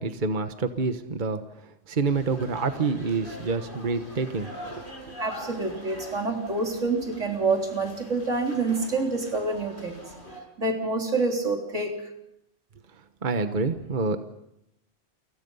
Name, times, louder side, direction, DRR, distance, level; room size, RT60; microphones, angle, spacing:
voice 1, 0.0-1.4 1.9-4.8 13.2-14.2, right 4 dB, 40° right, 8 dB, 1.3 m, -27 dB
sound 1, 2.0-10.4, equal, 45° left, 6.5 m, -43 dB
voice 2, 5.2-10.0 10.6-12.0, right 3 dB, 80° right, 2 dB, 3.9 m, -27 dB
29.5 x 24.0 x 5.5 m, 0.82 s
omnidirectional pair, 1.3 m